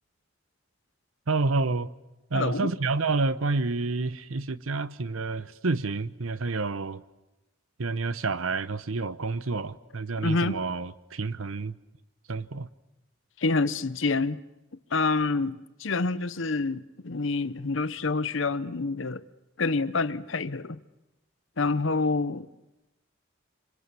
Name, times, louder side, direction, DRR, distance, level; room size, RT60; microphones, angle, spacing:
voice 1, 1.3-1.9 2.3-7.0 7.8-11.8 12.3-12.7, right 3 dB, 85° right, 0.9 m, -29 dB
voice 2, 2.3-2.7 10.2-10.6 13.4-14.4 14.9-19.2 19.6-20.8 21.6-22.5, left 3 dB, 65° left, 0.8 m, -27 dB
26.0 x 25.5 x 7.0 m
head